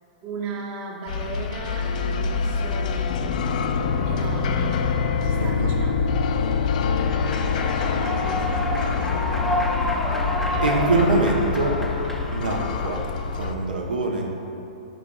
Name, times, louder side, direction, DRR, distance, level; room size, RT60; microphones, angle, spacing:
voice 1, 0.2-3.3 4.1-4.9 5.2-6.3 7.5-7.6 8.2-9.3, right 3 dB, 35° right, 0 dB, 0.8 m, -36 dB
sound 1, 1.1-13.5, left 5 dB, 65° left, 0.4 m, -25 dB
voice 2, 5.4-5.8 7.8-7.9 10.6-11.8 12.3-13.1 13.3-14.3, right 3 dB, 80° right, 0 dB, 0.7 m, -24 dB
Human voice / Clapping / Cheering, 7.0-13.0, equal, 5° left, 0.4 m, -29 dB
9.0 x 4.9 x 2.2 m, 2.8 s
hypercardioid pair, 120°, 5 cm